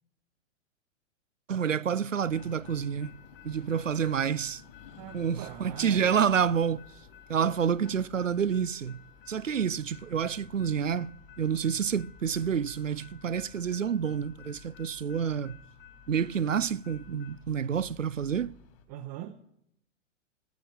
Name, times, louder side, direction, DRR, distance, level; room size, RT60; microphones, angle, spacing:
voice 1, 1.5-3.1 3.4-4.6 5.1-6.8 7.3-11.1 11.4-15.6 16.1-18.5, right 7 dB, 90° right, 0.5 m, -28 dB
sound 1, 2.2-18.8, left 6 dB, 50° left, 3.4 m, -52 dB
voice 2, 5.0-6.2 18.9-19.4, right 12 dB, 30° right, 0.8 m, -42 dB
15.5 x 14.0 x 6.4 m
figure-of-eight pair, 105°, 37 cm